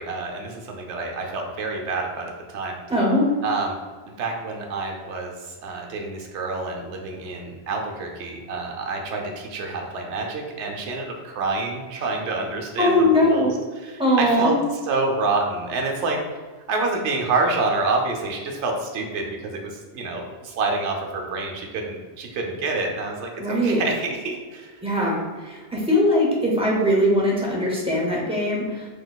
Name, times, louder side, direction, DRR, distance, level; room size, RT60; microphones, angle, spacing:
voice 1, 0.0-2.8 3.4-3.8 4.0-5.3 5.6-14.5 14.9-16.2 16.7-24.7, right 3 dB, 85° right, 1 dB, 0.9 m, -28 dB
voice 2, 2.9-3.2 12.8-13.5 14.0-14.6 23.4-23.8 24.8-28.9, left 1 dB, 5° right, -4 dB, 0.5 m, -20 dB
3.8 x 2.8 x 2.3 m, 1.4 s
omnidirectional pair, 1.2 m